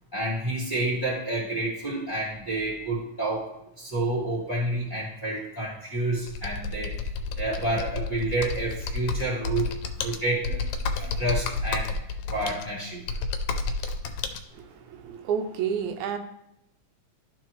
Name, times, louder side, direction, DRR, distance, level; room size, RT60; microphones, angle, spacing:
voice 1, 0.1-3.5 3.8-6.9 7.4-9.7 10.0-10.7 11.0-12.0 12.3-13.2, right 1 dB, 20° left, -7 dB, 1.4 m, -29 dB
Computer keyboard, 6.3-14.4, left 3 dB, 80° left, 1.8 m, -31 dB
voice 2, 14.5-16.2, right 7 dB, 80° right, 6 dB, 2.1 m, -30 dB
12.5 x 4.3 x 3.1 m, 0.82 s
omnidirectional pair, 3.3 m